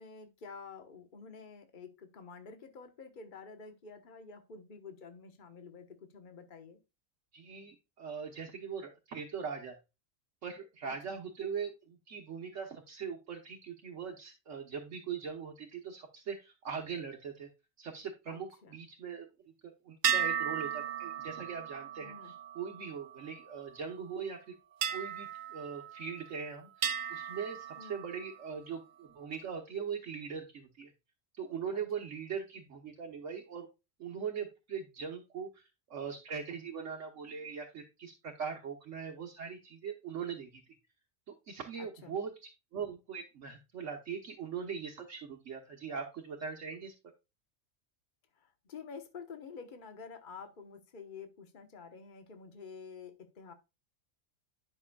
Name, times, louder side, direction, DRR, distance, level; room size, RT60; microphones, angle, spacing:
voice 1, 0.0-6.8 10.8-11.2 18.3-18.7 22.0-22.3 27.8-28.0 31.7-31.8 41.8-42.1 48.4-53.5, left 5 dB, 40° left, 7 dB, 1.2 m, -49 dB
voice 2, 7.3-9.8 10.4-17.5 17.8-19.3 19.6-24.5 24.9-30.9 31.4-33.7 34.0-40.6 41.5-46.9, right 6 dB, 70° right, 1 dB, 1.3 m, -41 dB
sound 1, 20.0-23.7 24.8-26.4 26.8-28.5, right 8 dB, 50° right, 0.6 m, -36 dB
11.0 x 6.1 x 2.3 m, 0.26 s
omnidirectional pair, 1.4 m